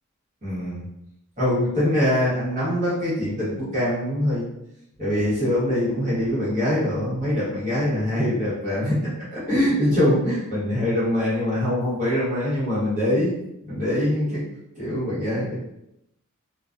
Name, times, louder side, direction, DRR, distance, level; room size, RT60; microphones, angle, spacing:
voice 1, 0.4-0.8 1.4-4.4 5.0-13.3 13.6-14.4 14.7-15.6, left 1 dB, 35° right, -9 dB, 1.1 m, -23 dB
2.3 x 2.2 x 2.4 m, 0.81 s
head